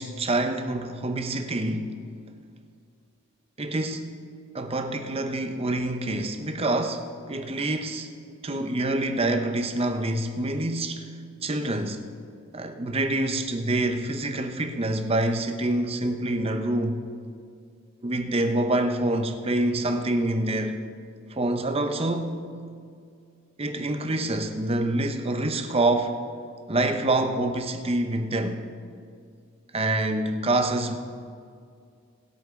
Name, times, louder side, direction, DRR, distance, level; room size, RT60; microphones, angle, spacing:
voice 1, 0.0-2.0 3.6-4.2 4.5-8.1 8.4-11.1 11.4-12.0 12.5-17.0 18.0-20.8 21.3-22.5 23.6-26.2 26.7-28.7 29.7-31.0, right 2 dB, 25° right, 0.8 m, -26 dB
20.0 x 8.4 x 3.8 m
head